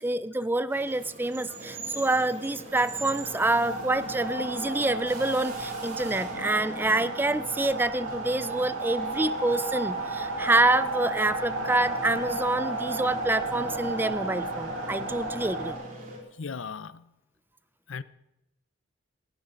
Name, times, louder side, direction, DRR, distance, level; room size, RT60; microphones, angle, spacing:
voice 1, 0.0-15.8, right 2 dB, 10° right, 15 dB, 0.4 m, -27 dB
sound 1, 0.7-16.2, right 1 dB, 45° right, 4.4 m, -42 dB
sound 2, 2.7-15.7, right 2 dB, 85° right, 3.7 m, -33 dB
voice 2, 16.4-16.9 17.9-18.0, left 5 dB, 65° left, 16 dB, 0.6 m, -35 dB
19.0 x 15.5 x 3.9 m, 0.93 s
head